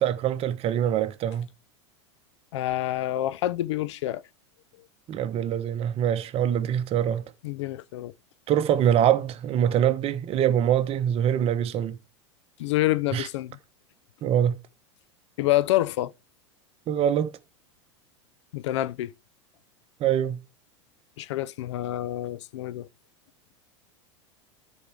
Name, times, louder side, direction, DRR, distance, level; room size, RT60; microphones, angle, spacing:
voice 1, 0.0-1.5 5.1-7.2 8.5-12.0 13.1-13.3 14.2-14.6 16.9-17.3 20.0-20.4, right 10 dB, 40° right, 1.1 m, -24 dB
voice 2, 2.5-4.2 7.4-8.1 12.6-13.6 15.4-16.1 18.5-19.1 21.2-22.9, left 15 dB, 70° left, 0.5 m, -27 dB
13.0 x 4.8 x 3.5 m
hypercardioid pair, 100°, 16 cm